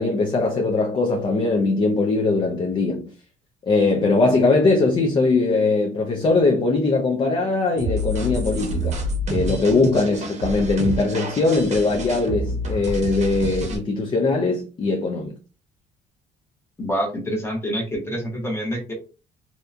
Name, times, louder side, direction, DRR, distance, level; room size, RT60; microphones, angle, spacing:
voice 1, 0.0-3.1 3.7-9.0 9.3-15.3, left 3 dB, 30° left, 0.4 m, -21 dB
sound 1, 7.8-13.8, equal, 40° right, 0.8 m, -28 dB
voice 2, 16.8-18.9, equal, 15° left, 0.9 m, -26 dB
2.8 x 2.2 x 2.4 m
cardioid pair, 110°, 17 cm